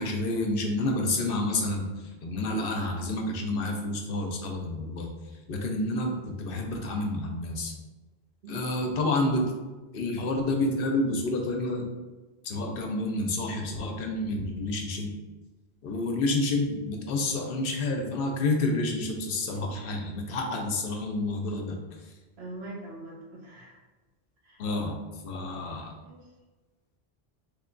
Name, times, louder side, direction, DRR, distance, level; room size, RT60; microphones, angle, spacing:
voice 1, 0.0-5.1 5.5-7.7 8.5-9.5 9.9-11.9 12.4-15.1 15.8-21.8 22.0-22.1 24.6-25.0 25.2-25.9, left 2 dB, 65° left, 2 dB, 0.7 m, -29 dB
voice 2, 22.4-23.8 24.4-24.6 26.0-26.2, right 2 dB, 80° right, -3 dB, 1.1 m, -42 dB
3.1 x 2.3 x 3.7 m, 1.2 s
omnidirectional pair, 1.0 m